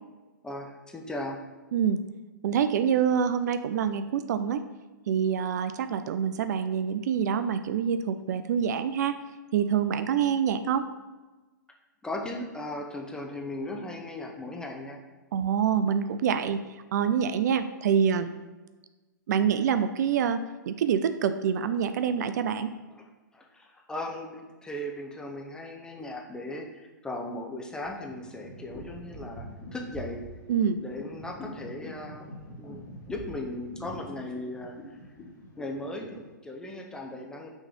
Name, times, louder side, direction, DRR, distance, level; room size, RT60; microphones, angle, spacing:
voice 1, 0.4-1.4 12.0-15.0 22.9-23.0 23.3-30.3 30.8-34.7 35.6-37.5, left 1 dB, 5° left, 1 dB, 0.8 m, -37 dB
voice 2, 2.4-4.6 5.1-9.2 9.5-10.9 15.3-16.6 16.9-18.3 19.3-22.7 30.5-30.8, right 7 dB, 60° right, 11 dB, 0.4 m, -26 dB
sound 1, 27.8-36.3, left 1 dB, 25° left, 1.5 m, -44 dB
6.2 x 3.2 x 5.3 m, 1.2 s
hypercardioid pair, 125°, 10 cm